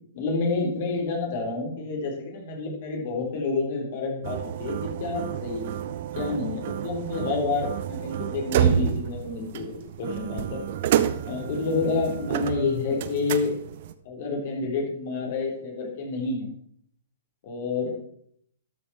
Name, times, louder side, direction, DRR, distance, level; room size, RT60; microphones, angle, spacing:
voice 1, 0.1-5.6 6.1-10.6 11.2-13.5 14.0-16.5 17.4-17.9, left 4 dB, 55° left, 0 dB, 3.5 m, -29 dB
sound 1, 4.2-13.9, right 10 dB, 55° right, 0.7 m, -29 dB
13.0 x 6.0 x 4.8 m, 0.67 s
hypercardioid pair, 125°, 0 cm